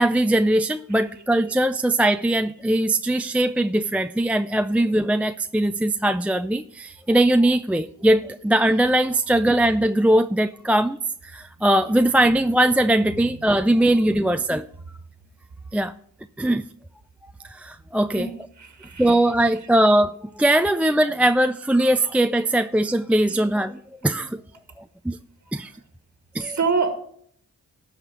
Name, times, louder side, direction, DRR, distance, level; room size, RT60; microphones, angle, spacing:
voice 1, 0.0-11.0 11.2-14.7 15.7-15.9 16.4-16.7 17.4-18.3 19.0-24.4 24.8-25.2 25.5-25.7 26.3-26.6, right 1 dB, 5° right, 0.3 m, -20 dB
voice 2, 0.9-1.5 4.6-4.8 8.1-8.7 12.0-12.2 13.2-14.4 18.1-19.7 22.3-22.4 23.2-23.6 25.5-25.8 26.3-26.9, right 4 dB, 50° right, 1.5 m, -31 dB
13.0 x 4.3 x 8.1 m
cardioid pair, 50°, 35 cm